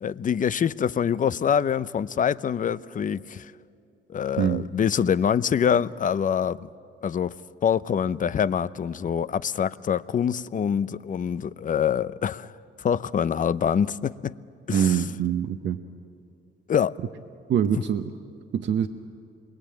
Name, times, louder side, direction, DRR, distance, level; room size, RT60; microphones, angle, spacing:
voice 1, 0.0-3.5 4.1-6.7 7.0-7.3 7.6-12.5 12.8-14.3 14.7-15.0 16.7-16.9, left 8 dB, 40° left, 0.6 m, -25 dB
voice 2, 14.7-15.8 17.5-18.1 18.5-18.9, right 9 dB, 65° right, 0.9 m, -24 dB
27.0 x 22.0 x 8.7 m
cardioid pair, 90°, 20 cm